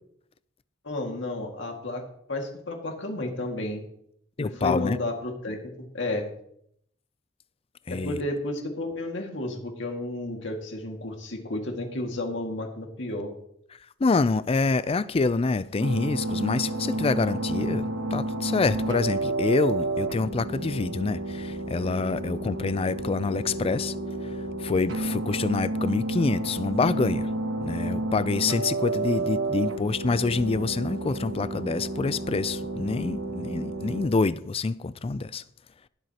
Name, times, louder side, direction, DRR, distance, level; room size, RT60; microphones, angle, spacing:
voice 1, 0.8-3.9 4.4-6.3 7.9-13.3, left 2 dB, 70° left, 2.1 m, -32 dB
voice 2, 4.4-5.0 7.9-8.2 14.0-23.9 24.6-27.3 27.6-35.4, left 3 dB, 30° left, 0.4 m, -26 dB
sound 1, 15.8-34.1, right 2 dB, 75° right, 1.1 m, -31 dB
20.0 x 7.9 x 2.9 m
head